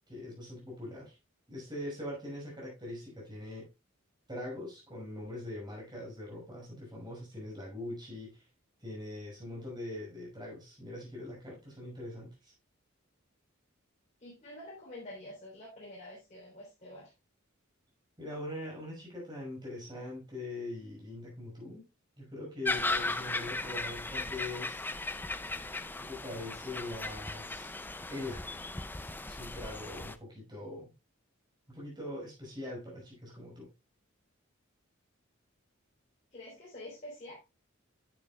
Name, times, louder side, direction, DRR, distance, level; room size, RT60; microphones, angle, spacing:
voice 1, 0.1-1.1 1.5-3.7 4.3-8.4 8.8-12.5 18.2-21.9 22.2-24.8 26.0-27.7 28.1-28.4 29.3-30.9 31.7-33.7, left 1 dB, 20° right, 5.9 m, -42 dB
voice 2, 14.2-17.1 36.3-37.4, left 1 dB, 35° left, 3.7 m, -47 dB
sound 1, 22.6-30.2, left 2 dB, 10° left, 0.4 m, -37 dB
10.0 x 8.8 x 2.4 m
head